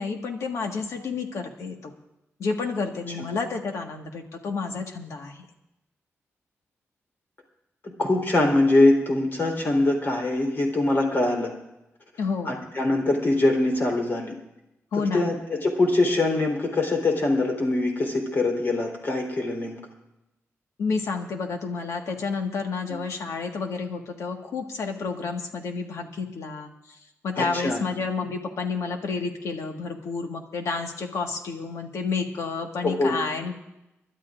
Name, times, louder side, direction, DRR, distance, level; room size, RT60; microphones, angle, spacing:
voice 1, 0.0-1.9 2.4-5.4 12.2-12.6 14.9-15.3 20.8-26.7 27.2-33.6, left 4 dB, 90° left, 3 dB, 1.6 m, -30 dB
voice 2, 8.0-11.5 12.5-14.3 14.9-19.8 22.9-23.0 27.4-27.8 32.8-33.2, left 2 dB, 45° left, 1 dB, 3.6 m, -23 dB
30.0 x 12.0 x 2.5 m, 0.91 s
wide cardioid pair, 125°, 5 cm